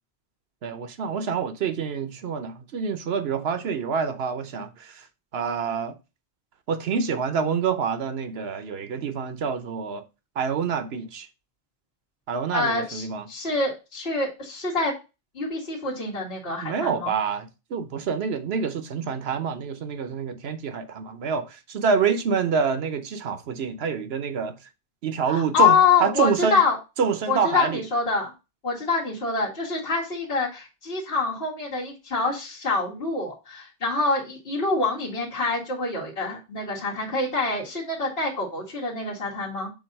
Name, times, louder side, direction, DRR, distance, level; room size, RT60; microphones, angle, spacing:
voice 1, 0.6-5.0 5.3-6.0 6.7-10.0 10.4-11.3 12.3-13.3 16.6-24.6 25.0-26.6 27.0-27.8, right 6 dB, 65° right, 1.0 m, -27 dB
voice 2, 12.5-14.9 15.3-17.1 25.3-26.8 27.3-28.3 28.6-39.7, left 4 dB, 60° left, 2.3 m, -25 dB
7.2 x 2.7 x 5.3 m
omnidirectional pair, 1.2 m